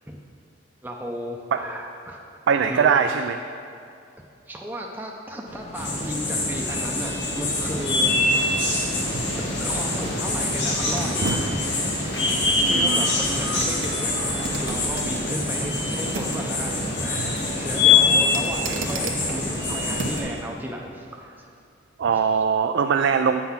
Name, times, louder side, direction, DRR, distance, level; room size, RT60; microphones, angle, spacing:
voice 1, 0.8-2.2 2.7-3.0 4.5-8.6 9.6-11.6 12.5-21.5 22.1-22.4, equal, 10° right, -1 dB, 0.5 m, -35 dB
voice 2, 2.5-3.4 12.6-13.0 22.0-23.4, right 6 dB, 70° right, 7 dB, 0.3 m, -21 dB
sound 1, 5.5-20.3, left 1 dB, 35° left, 0.7 m, -38 dB
sound 2, 5.7-20.2, left 3 dB, 65° left, 1.7 m, -24 dB
sound 3, 6.0-20.4 20.9-21.0, right 3 dB, 90° right, 0.8 m, -37 dB
8.4 x 5.8 x 5.7 m, 2.4 s
head